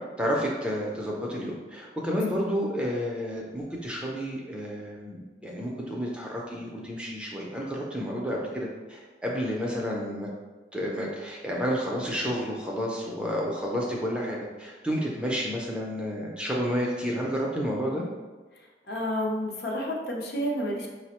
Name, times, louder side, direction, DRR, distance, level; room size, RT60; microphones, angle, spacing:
voice 1, 0.2-10.3 10.7-18.1, equal, 5° right, -3 dB, 0.4 m, -30 dB
voice 2, 18.5-20.9, equal, 60° left, 0 dB, 0.6 m, -30 dB
4.9 x 2.0 x 2.9 m, 1.3 s
head